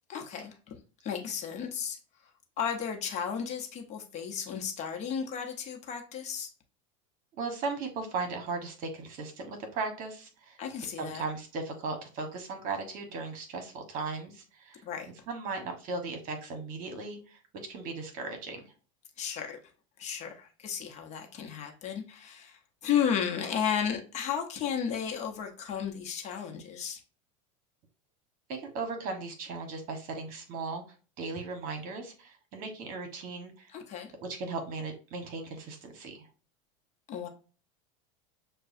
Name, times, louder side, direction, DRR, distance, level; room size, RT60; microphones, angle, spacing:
voice 1, 0.1-0.7 1.0-2.0 2.6-6.5 10.6-11.2 14.8-15.1 19.2-19.6 20.0-27.0 33.7-34.1 37.1-37.3, left 8 dB, 40° left, 2 dB, 0.9 m, -33 dB
voice 2, 7.4-10.6 11.0-14.8 15.3-17.4 17.7-18.6 28.5-30.8 31.2-33.7 34.2-36.3, right 3 dB, 50° right, 5 dB, 1.2 m, -37 dB
6.6 x 2.3 x 2.6 m, 0.36 s
supercardioid pair, 110°, 18 cm